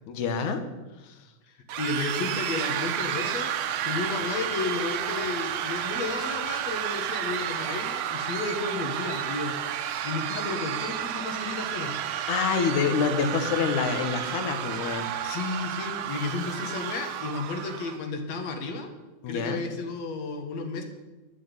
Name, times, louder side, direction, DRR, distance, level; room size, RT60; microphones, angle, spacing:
voice 1, 0.1-0.7 1.0-1.2 12.3-15.1 19.2-19.6, left 6 dB, 85° left, 8 dB, 2.7 m, -27 dB
voice 2, 1.5-3.6 3.8-9.6 10.0-11.9 15.2-18.9 19.3-20.8, left 3 dB, 65° left, 5 dB, 2.7 m, -33 dB
sound 1, 1.7-18.0, right 10 dB, 80° right, 1.1 m, -31 dB
12.5 x 6.2 x 9.7 m, 1.1 s
omnidirectional pair, 3.3 m